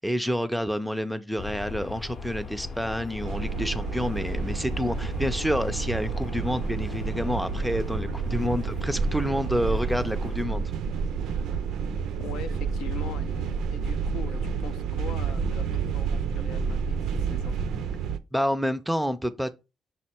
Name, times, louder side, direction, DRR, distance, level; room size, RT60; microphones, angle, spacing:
voice 1, 0.0-10.6 18.3-19.5, equal, ahead, 0.3 m, -28 dB
sound 1, 1.4-10.4, left 4 dB, 45° left, 0.6 m, -37 dB
sound 2, 3.2-18.2, right 6 dB, 85° right, 0.3 m, -30 dB
voice 2, 12.2-17.6, left 8 dB, 85° left, 0.4 m, -42 dB
6.0 x 2.1 x 4.2 m
cardioid pair, 90°, 0 cm